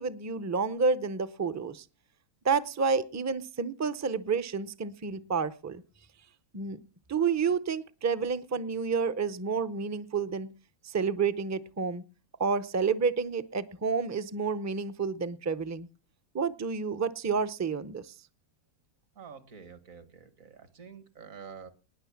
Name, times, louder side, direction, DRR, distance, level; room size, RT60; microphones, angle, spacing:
voice 1, 0.0-1.8 2.4-5.8 6.5-6.8 7.1-10.5 10.8-12.0 12.4-15.9 16.3-18.1, right 5 dB, 25° right, 13 dB, 0.3 m, -30 dB
voice 2, 19.2-21.7, right 6 dB, 65° right, 13 dB, 1.8 m, -48 dB
19.5 x 6.6 x 7.1 m, 0.36 s
omnidirectional pair, 1.5 m